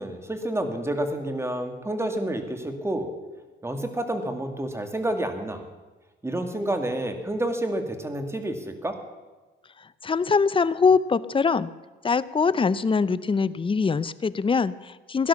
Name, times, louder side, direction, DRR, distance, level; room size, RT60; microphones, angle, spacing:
voice 1, 0.0-3.1 3.6-5.6 6.2-9.0, right 1 dB, 15° right, 6 dB, 2.3 m, -29 dB
voice 2, 10.0-11.7 12.0-15.3, left 5 dB, 25° left, 16 dB, 0.6 m, -23 dB
17.0 x 11.5 x 7.0 m, 1.2 s
cardioid pair, 90°, 20 cm